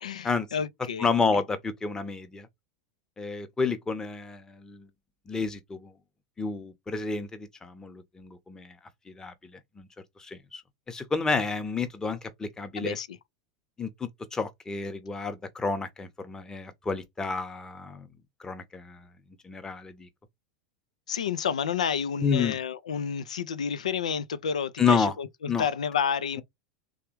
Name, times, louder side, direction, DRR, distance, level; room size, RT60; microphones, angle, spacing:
voice 1, 0.0-1.1 12.8-13.2 21.1-26.4, left 7 dB, 85° left, 0.5 m, -30 dB
voice 2, 1.0-2.5 3.2-4.9 5.3-5.9 6.4-8.8 9.1-9.9 10.2-10.6 10.9-13.0 13.8-18.1 18.4-19.1 19.4-20.1 22.2-22.6 24.8-25.1 25.5-25.7, left 5 dB, 15° left, 0.9 m, -30 dB
3.4 x 2.3 x 3.1 m
hypercardioid pair, 95°, 4 cm